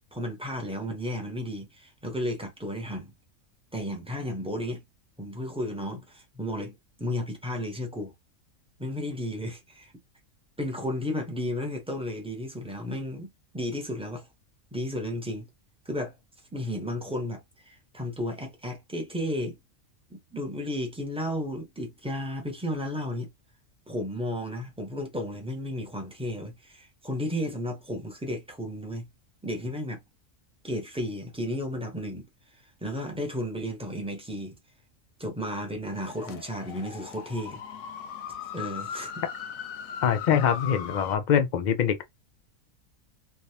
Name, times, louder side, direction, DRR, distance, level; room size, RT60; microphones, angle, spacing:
voice 1, 0.1-3.1 3.7-4.8 5.2-8.1 8.8-9.9 10.6-13.3 13.5-14.3 14.7-15.5 15.9-16.1 16.5-19.6 20.1-23.3 23.9-29.1 29.4-30.0 30.6-32.3 32.8-34.6 35.2-37.6 38.5-39.1, left 1 dB, 5° right, 0.6 m, -33 dB
sound 1, 35.9-41.2, left 8 dB, 90° left, 1.1 m, -38 dB
voice 2, 40.0-42.0, left 8 dB, 70° left, 0.4 m, -24 dB
3.4 x 2.3 x 2.7 m
omnidirectional pair, 1.4 m